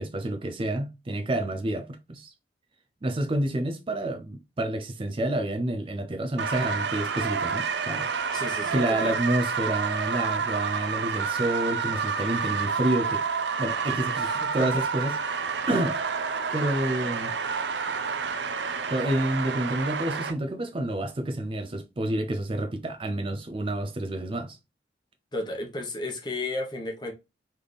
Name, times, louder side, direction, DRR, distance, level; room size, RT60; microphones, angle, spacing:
voice 1, 0.0-2.3 3.0-8.1 8.7-13.2 13.6-15.2 15.7-16.0 16.5-17.3 18.9-24.6, right 1 dB, 30° right, 0.4 m, -29 dB
sound 1, 6.4-20.3, right 5 dB, 75° right, 0.6 m, -29 dB
voice 2, 8.3-9.2 14.1-14.9 15.3-15.4 25.3-27.1, left 2 dB, 25° left, 1.0 m, -33 dB
4.0 x 3.4 x 3.3 m
head